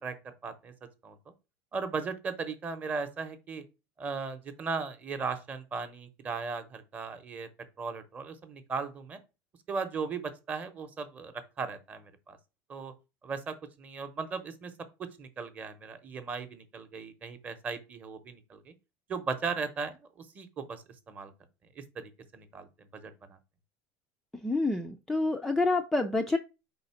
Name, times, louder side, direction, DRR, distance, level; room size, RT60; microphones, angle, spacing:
voice 1, 0.0-0.7 1.0-1.2 1.7-3.6 4.0-7.5 7.8-9.2 9.7-12.4 12.7-12.9 13.2-14.7 15.0-18.7 19.1-21.3 21.8-23.4, right 5 dB, 20° right, 0.8 m, -37 dB
voice 2, 24.4-26.4, left 2 dB, 5° left, 0.3 m, -27 dB
5.0 x 3.9 x 5.7 m
cardioid pair, 170°, 7 cm